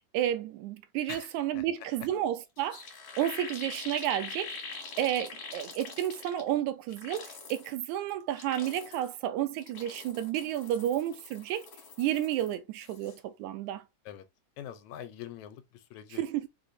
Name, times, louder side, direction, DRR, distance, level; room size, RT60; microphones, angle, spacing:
voice 1, 0.1-2.8 3.2-4.5 5.0-11.7 12.0-13.8 16.1-16.5, right 11 dB, 80° right, 2.0 m, -31 dB
voice 2, 1.1-1.6 14.1-14.3 14.6-16.2, left 10 dB, 80° left, 2.0 m, -44 dB
sound 1, 2.3-2.4 2.6-6.6 6.9-7.7 8.2-9.2 9.5-12.5 12.8-13.2, left 5 dB, 50° left, 2.0 m, -44 dB
5.0 x 3.7 x 2.5 m
omnidirectional pair, 3.4 m